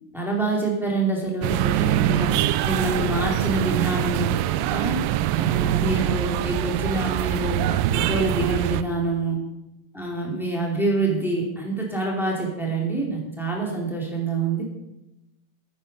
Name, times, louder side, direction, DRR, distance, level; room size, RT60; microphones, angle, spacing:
voice 1, 0.1-2.3 2.6-4.3 4.7-5.0 5.3-9.4 9.9-14.6, right 2 dB, ahead, -3 dB, 1.4 m, -26 dB
sound 1, 1.4-8.8, right 13 dB, 85° right, 2.5 m, -24 dB
11.0 x 9.3 x 5.4 m, 0.93 s
omnidirectional pair, 4.7 m